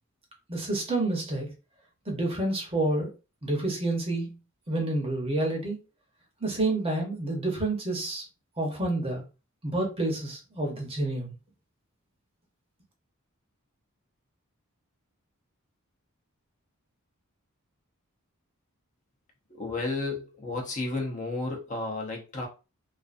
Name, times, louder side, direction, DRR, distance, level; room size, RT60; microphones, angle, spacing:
voice 1, 0.5-1.5 2.1-3.1 3.4-4.4 4.7-5.8 6.4-8.2 8.6-9.2 9.6-11.3, right 2 dB, 25° right, 1 dB, 0.8 m, -29 dB
voice 2, 19.5-22.5, left 3 dB, 35° left, 0 dB, 0.6 m, -32 dB
2.5 x 2.4 x 2.4 m, 0.30 s
head